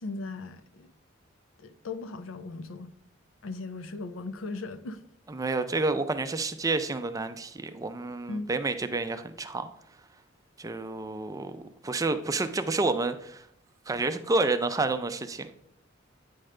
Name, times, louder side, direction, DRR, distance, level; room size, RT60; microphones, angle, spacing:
voice 1, 0.0-0.9 1.6-2.9 3.4-5.0 8.3-8.5, left 3 dB, 85° left, 0.5 m, -37 dB
voice 2, 5.3-9.7 10.6-13.4 13.9-15.6, right 3 dB, 15° right, 0.4 m, -29 dB
8.7 x 5.1 x 3.2 m
head